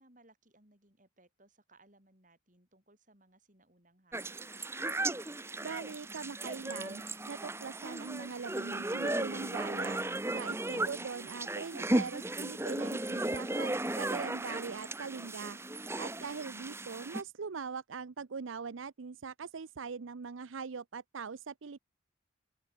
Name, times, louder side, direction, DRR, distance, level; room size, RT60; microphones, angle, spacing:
voice 1, 0.0-4.5, right 2 dB, 40° right, 7.3 m, -65 dB
sound 1, 4.1-17.2, right 1 dB, 10° right, 1.0 m, -36 dB
voice 2, 5.6-10.0 10.3-15.6 16.0-21.8, right 5 dB, 75° right, 0.6 m, -42 dB
open air
head